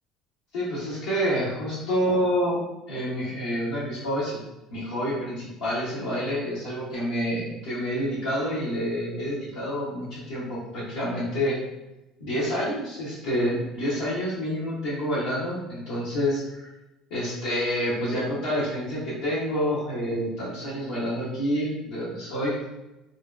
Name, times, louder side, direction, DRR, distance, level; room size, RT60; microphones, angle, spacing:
voice 1, 0.5-2.6 2.9-4.4 4.7-11.6 12.2-16.7 17.1-22.6, equal, 85° left, -10 dB, 0.7 m, -28 dB
2.5 x 2.1 x 2.3 m, 0.98 s
supercardioid pair, 85°, 0 cm